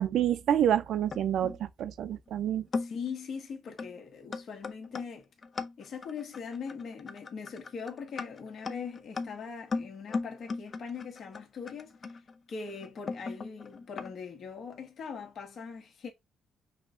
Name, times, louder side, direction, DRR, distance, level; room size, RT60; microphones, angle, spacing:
voice 1, 0.0-2.6, right 10 dB, 70° right, 0.6 m, -28 dB
sound 1, 0.6-1.6 2.3-2.4 2.7-3.1 3.8-4.0 4.3-14.1, left 4 dB, 40° left, 0.7 m, -38 dB
voice 2, 2.7-5.3 5.8-12.2 12.5-16.1, left 6 dB, 60° left, 1.3 m, -41 dB
5.6 x 2.3 x 3.8 m
cardioid pair, 90°, 0 cm